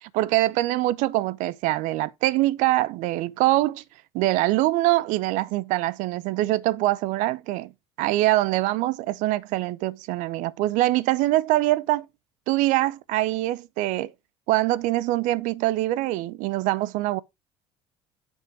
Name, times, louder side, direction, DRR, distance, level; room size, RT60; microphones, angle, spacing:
voice 1, 0.0-3.8 4.1-7.7 8.0-12.1 12.5-14.1 14.5-17.2, right 17 dB, 60° right, 0.6 m, -24 dB
7.3 x 5.3 x 4.8 m
hypercardioid pair, 60°, 15 cm